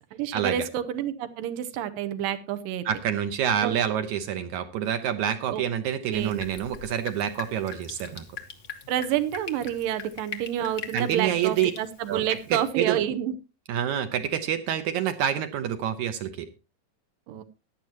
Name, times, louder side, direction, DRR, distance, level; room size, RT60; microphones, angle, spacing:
voice 1, 0.1-2.9 3.6-3.8 5.5-5.6 6.1-6.4 8.9-13.3 17.3-17.4, right 10 dB, 90° right, 11 dB, 2.6 m, -29 dB
voice 2, 2.9-8.3 10.9-11.7 12.1-12.2 12.5-13.0 13.7-16.5, right 9 dB, 75° right, 8 dB, 2.0 m, -27 dB
Drip, 6.1-12.7, left 6 dB, 90° left, 0.8 m, -42 dB
16.0 x 10.5 x 2.9 m, 0.29 s
omnidirectional pair, 3.9 m